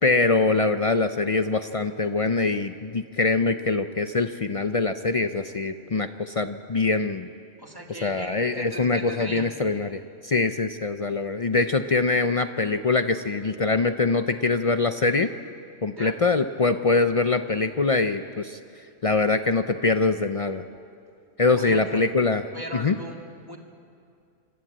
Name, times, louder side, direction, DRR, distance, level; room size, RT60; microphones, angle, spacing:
voice 1, 0.0-7.3 7.9-15.3 15.8-18.6 19.0-20.6 21.4-22.4 22.7-23.0, left 3 dB, 60° left, 9 dB, 0.3 m, -23 dB
voice 2, 7.6-9.5 15.9-16.2 21.6-22.0 22.5-23.6, right 1 dB, 15° right, 2 dB, 1.9 m, -38 dB
25.5 x 13.0 x 8.7 m, 2.4 s
omnidirectional pair, 1.4 m